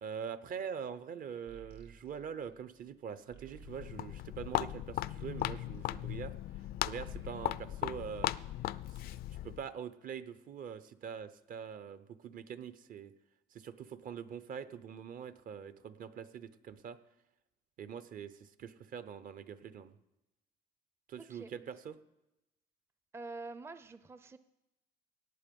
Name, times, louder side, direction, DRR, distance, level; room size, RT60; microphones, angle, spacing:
voice 1, 0.0-6.3 6.8-8.3 8.9-9.0 9.4-13.1 13.5-17.0 17.8-20.0 21.1-21.9, right 7 dB, 55° right, 14 dB, 0.8 m, -44 dB
sound 1, 1.5-6.6 6.9-8.7, right 7 dB, 85° right, 1.6 m, -57 dB
Walk footsteps, 3.5-9.7, left 14 dB, 65° left, 0.4 m, -38 dB
voice 2, 21.2-21.5 23.1-24.4, right 3 dB, 15° right, 13 dB, 0.5 m, -46 dB
17.5 x 8.5 x 5.3 m, 0.98 s
cardioid pair, 110°, 17 cm